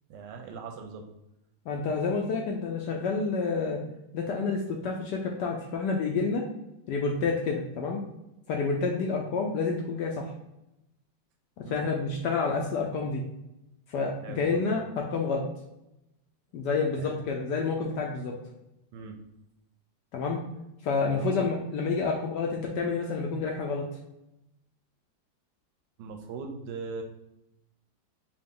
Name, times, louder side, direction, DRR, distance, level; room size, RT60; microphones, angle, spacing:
voice 1, 0.1-1.0 11.7-11.8 14.2-14.6 17.0-17.2 18.9-19.2 21.1-21.5 26.0-27.0, right 5 dB, 75° right, 4 dB, 1.1 m, -40 dB
voice 2, 1.7-3.8 4.1-6.4 6.9-8.1 8.5-10.3 11.7-13.2 13.9-15.5 16.5-18.3 20.1-20.4 20.8-23.8, left 4 dB, 70° left, 0 dB, 1.1 m, -29 dB
4.9 x 2.4 x 3.6 m, 0.88 s
omnidirectional pair, 2.1 m